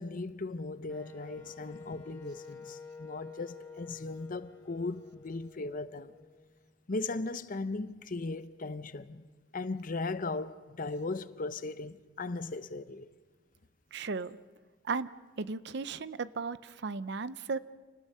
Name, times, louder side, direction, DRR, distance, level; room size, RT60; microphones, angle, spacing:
voice 1, 0.0-6.1 6.9-9.3 9.5-13.1, left 3 dB, 45° left, 0.7 m, -37 dB
Wind instrument woodwind instrument, 0.9-6.7, left 4 dB, 10° left, 3.9 m, -50 dB
voice 2, 13.9-14.4 14.8-15.1 15.4-17.6, right 4 dB, 60° right, 0.6 m, -35 dB
28.0 x 19.0 x 5.5 m
head